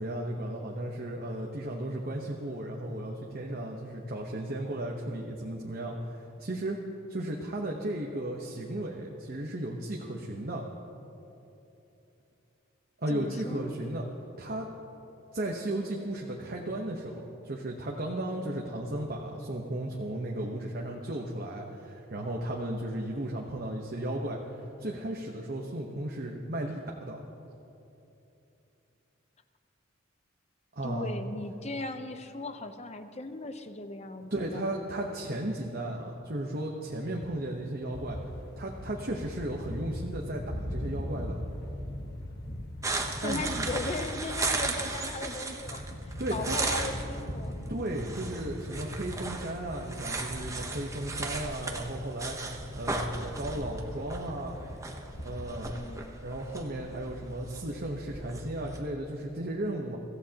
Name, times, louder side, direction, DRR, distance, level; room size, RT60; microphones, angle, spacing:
voice 1, 0.0-6.8 7.1-10.6 13.0-14.1 14.4-14.7 15.3-27.2 30.8-31.1 34.3-38.2 38.6-41.4 43.2-43.4 46.2-46.6 47.7-52.4 52.7-54.6 55.2-55.8 56.2-60.0, right 1 dB, 45° right, -1 dB, 1.0 m, -35 dB
voice 2, 13.1-13.8 30.8-34.6 43.2-47.5 55.7-56.2, left 2 dB, 30° left, 9 dB, 0.7 m, -38 dB
sound 1, 37.9-55.7, equal, 50° left, 1.4 m, -40 dB
sound 2, 42.8-58.8, right 3 dB, 15° right, 0.9 m, -37 dB
24.5 x 14.5 x 2.9 m, 2.9 s
head